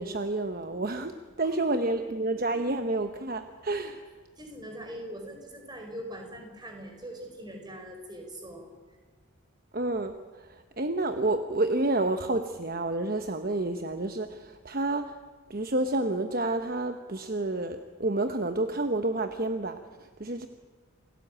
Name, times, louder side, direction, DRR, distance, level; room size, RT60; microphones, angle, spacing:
voice 1, 0.0-4.1 9.7-15.2 15.5-20.5, right 2 dB, 40° right, 8 dB, 1.0 m, -29 dB
voice 2, 1.4-1.9 4.4-9.0, equal, 20° right, 3 dB, 4.8 m, -42 dB
28.0 x 18.0 x 8.8 m, 1.6 s
head